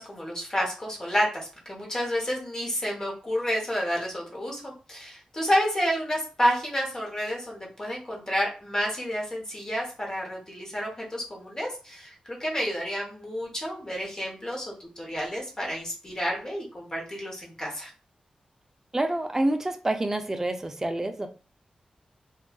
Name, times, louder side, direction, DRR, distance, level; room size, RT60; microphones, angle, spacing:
voice 1, 0.0-17.9, equal, 25° left, -2 dB, 0.9 m, -30 dB
voice 2, 18.9-21.3, right 1 dB, 15° right, 7 dB, 0.3 m, -27 dB
2.6 x 2.3 x 2.2 m, 0.35 s
wide cardioid pair, 145°, 2 cm